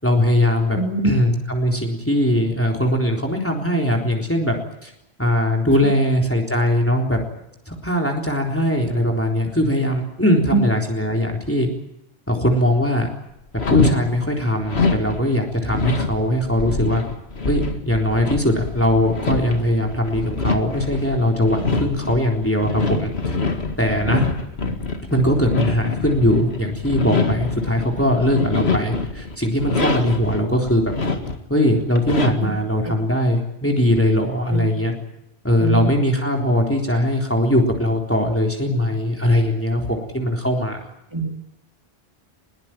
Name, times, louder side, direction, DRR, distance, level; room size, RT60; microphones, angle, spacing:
voice 1, 0.0-0.8 1.0-4.5 4.8-4.9 5.2-7.2 7.7-11.7 12.3-13.1 13.7-17.0 17.5-23.1 23.8-24.3 25.1-30.9 31.5-34.9 35.4-40.8, left 1 dB, 10° left, 1 dB, 3.8 m, -20 dB
voice 2, 0.7-1.1 10.5-10.6 32.8-32.9 34.5-34.7 35.6-35.9 41.1-41.3, right 4 dB, 25° right, 1 dB, 4.1 m, -22 dB
sound 1, 13.5-14.0 14.6-30.4 30.7-31.5 31.9-32.6, left 3 dB, 75° left, 2.4 m, -25 dB
21.5 x 21.5 x 9.1 m, 0.85 s
omnidirectional pair, 1.1 m